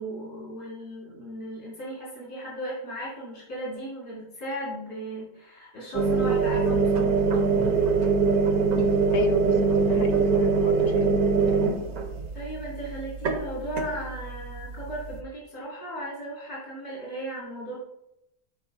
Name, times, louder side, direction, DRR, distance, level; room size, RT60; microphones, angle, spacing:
voice 1, 0.0-7.7 12.3-17.8, right 1 dB, 85° left, -6 dB, 3.4 m, -36 dB
sound 1, 5.9-15.2, right 5 dB, 75° right, 1.4 m, -24 dB
voice 2, 9.1-11.1 11.5-11.8, left 6 dB, 65° left, 7 dB, 0.6 m, -33 dB
9.9 x 5.0 x 2.7 m, 0.81 s
omnidirectional pair, 1.6 m